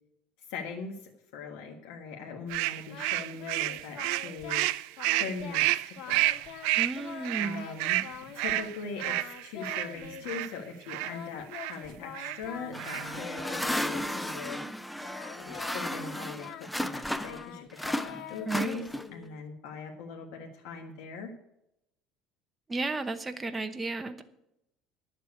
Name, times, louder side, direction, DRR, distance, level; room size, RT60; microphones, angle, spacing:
voice 1, 0.5-4.6 5.2-6.2 7.4-8.1 8.3-14.6 15.4-21.3, left 5 dB, 85° left, 1 dB, 1.6 m, -41 dB
sound 1, 2.5-10.5 10.9-11.2 11.5-11.8 12.1-12.4 12.7-13.2, right 18 dB, 85° right, 0.4 m, -30 dB
Singing, 2.9-4.7 5.0-5.7 6.0-6.7 7.0-8.7 9.0-10.5 11.1-14.7 15.0-19.4, left 10 dB, 50° left, 0.9 m, -45 dB
voice 2, 6.7-7.7 18.5-18.8 22.7-24.2, right 3 dB, 15° right, 7 dB, 0.8 m, -33 dB
sound 2, 12.7-17.5 17.8-19.2, equal, 5° left, 0.5 m, -34 dB
10.0 x 7.6 x 8.2 m, 0.82 s
cardioid pair, 160°, 0 cm